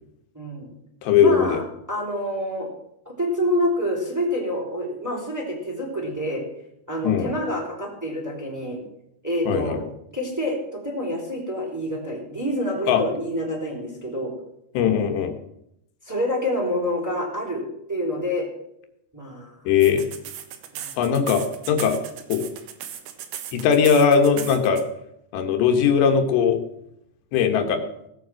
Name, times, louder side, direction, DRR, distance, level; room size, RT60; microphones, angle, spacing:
voice 1, 0.3-0.7 1.2-1.6 1.9-2.7 3.0-6.4 6.9-8.8 9.2-9.8 10.1-14.3 16.0-18.5 19.1-19.6 19.8-19.9 20.7-20.9 27.6-27.7, equal, 5° right, -2 dB, 3.0 m, -27 dB
voice 2, 1.0-1.6 7.0-7.3 9.5-9.8 12.9-13.0 14.8-15.3 19.7-20.1 21.0-22.0 22.3-22.5 23.5-24.8 25.3-26.6 27.3-27.8, left 7 dB, 85° left, 6 dB, 3.6 m, -19 dB
sound 1, 19.8-24.8, right 10 dB, 90° right, 3.5 m, -36 dB
17.5 x 7.9 x 7.6 m, 0.80 s
omnidirectional pair, 4.8 m